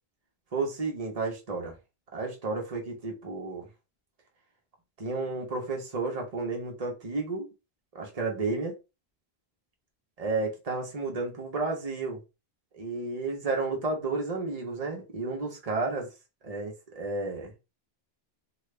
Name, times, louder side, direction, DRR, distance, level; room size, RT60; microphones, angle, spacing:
voice 1, 0.5-1.8 2.1-3.7 5.0-7.5 7.9-8.7 10.2-12.2 12.7-16.1 16.4-17.5, right 3 dB, 40° right, 1.1 m, -32 dB
3.1 x 2.4 x 3.3 m
omnidirectional pair, 1.0 m